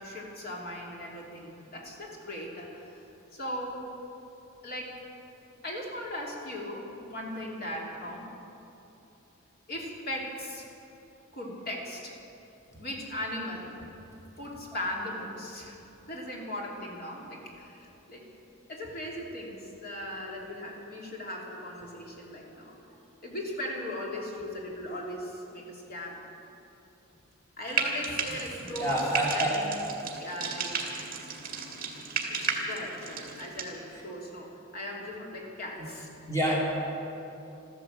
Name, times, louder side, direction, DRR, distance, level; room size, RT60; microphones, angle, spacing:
voice 1, 0.0-3.0 3.3-3.9 4.6-4.9 5.6-8.3 9.7-10.7 11.3-12.2 12.8-13.7 14.4-15.8 16.1-18.3 18.7-22.7 23.2-26.2 27.6-29.0 29.3-29.8 30.2-30.7 32.2-36.1 36.4-36.6, left 1 dB, 50° left, -2 dB, 2.9 m, -38 dB
Frying (food), 27.7-33.7, right 5 dB, 45° right, 2.1 m, -34 dB
voice 2, 28.8-29.5 35.8-35.9 36.3-36.6, right 1 dB, 15° left, -5 dB, 3.1 m, -27 dB
14.0 x 13.0 x 7.6 m, 2.9 s
head